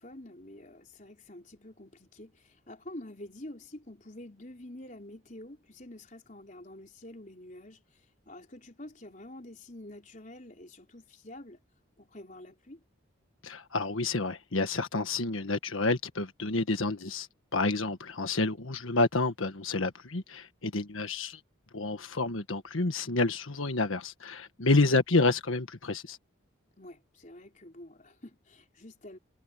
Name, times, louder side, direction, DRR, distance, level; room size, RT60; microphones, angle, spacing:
voice 1, 0.0-7.8 8.3-11.6 12.0-12.8 24.6-25.0 26.8-29.2, left 1 dB, 40° left, 4.5 m, -47 dB
voice 2, 13.4-21.4 21.7-26.2, left 3 dB, 80° left, 1.5 m, -29 dB
head